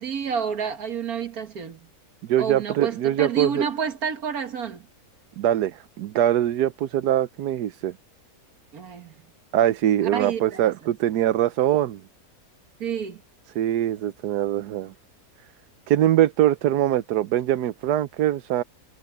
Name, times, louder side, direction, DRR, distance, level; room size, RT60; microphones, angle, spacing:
voice 1, 0.0-1.9 2.4-4.9 8.7-9.1 10.1-10.7 12.8-13.2, right 7 dB, 65° right, 2.0 m, -29 dB
voice 2, 2.3-3.6 5.4-7.9 9.5-12.0 13.5-14.9 15.9-18.6, right 12 dB, 85° right, 1.3 m, -22 dB
omnidirectional pair, 1.7 m